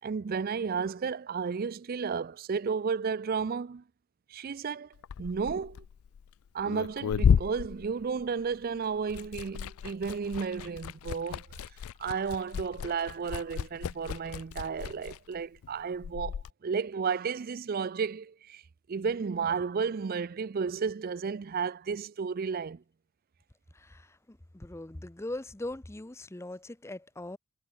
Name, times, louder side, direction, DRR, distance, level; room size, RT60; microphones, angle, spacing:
voice 1, 0.0-3.8 4.3-5.8 6.5-11.5 12.0-18.6 18.9-22.8, right 5 dB, 40° right, 0.4 m, -33 dB
Liquid, 4.9-8.6 8.9-16.5, left 7 dB, 70° left, 0.3 m, -33 dB
voice 2, 23.7-27.4, left 1 dB, 10° left, 0.6 m, -41 dB
head